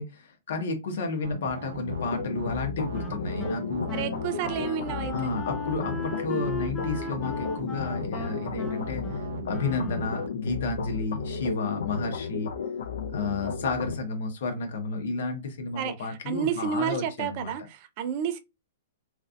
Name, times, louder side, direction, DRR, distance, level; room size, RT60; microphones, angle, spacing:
voice 1, 0.0-3.9 5.1-9.0 9.4-12.5 13.1-17.5, left 3 dB, 70° left, 1.1 m, -31 dB
sound 1, 1.2-10.3, right 4 dB, 80° right, 0.7 m, -40 dB
sound 2, 1.9-14.0, left 6 dB, 85° left, 0.5 m, -34 dB
Wind instrument woodwind instrument, 2.9-10.4, left 2 dB, 15° left, 0.6 m, -37 dB
voice 2, 3.9-5.3 13.1-13.6 15.8-18.4, right 8 dB, 40° right, 0.4 m, -31 dB
3.1 x 2.6 x 2.5 m
hypercardioid pair, 155°, 0 cm